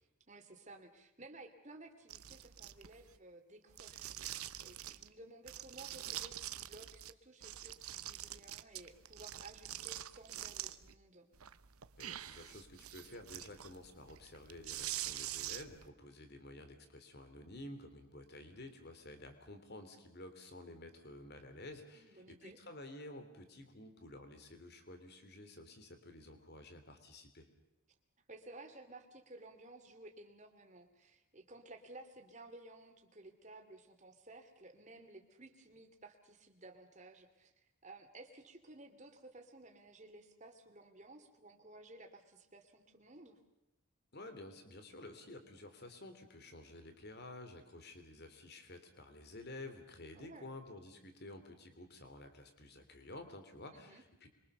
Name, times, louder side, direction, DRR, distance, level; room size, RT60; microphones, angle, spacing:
voice 1, 0.3-11.3 21.9-22.6 28.3-43.4 50.2-50.5 53.7-54.0, right 2 dB, 35° right, 5 dB, 2.7 m, -56 dB
sound 1, 2.1-3.1 3.7-5.1 5.5-7.1 7.4-10.9 11.3-15.9, right 13 dB, 80° right, 0.9 m, -45 dB
voice 2, 12.0-27.5 44.1-54.3, left 2 dB, 45° left, 8 dB, 3.2 m, -52 dB
26.5 x 23.5 x 6.9 m, 0.93 s
head